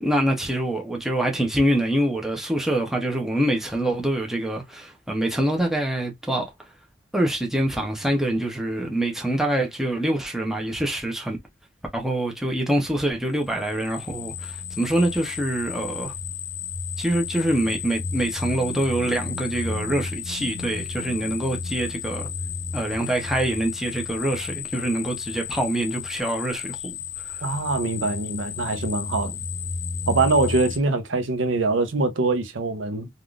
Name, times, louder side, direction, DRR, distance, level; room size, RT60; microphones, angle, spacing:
voice 1, 0.0-6.5 7.1-11.4 11.9-16.1 17.0-22.3 22.7-26.9, right 1 dB, ahead, 0.7 m, -25 dB
sound 1, 13.4-30.8, left 5 dB, 75° left, 0.6 m, -33 dB
voice 2, 27.4-29.4 30.1-33.1, right 3 dB, 80° right, 0.7 m, -23 dB
3.5 x 2.4 x 2.3 m
head